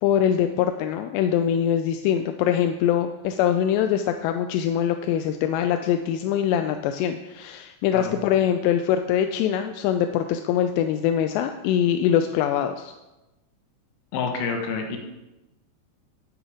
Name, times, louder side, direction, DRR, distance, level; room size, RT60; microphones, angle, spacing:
voice 1, 0.0-12.9, left 9 dB, 85° left, 7 dB, 2.5 m, -23 dB
voice 2, 14.1-15.0, left 5 dB, 65° left, 3 dB, 3.0 m, -28 dB
9.7 x 9.2 x 5.0 m, 1.0 s
omnidirectional pair, 5.3 m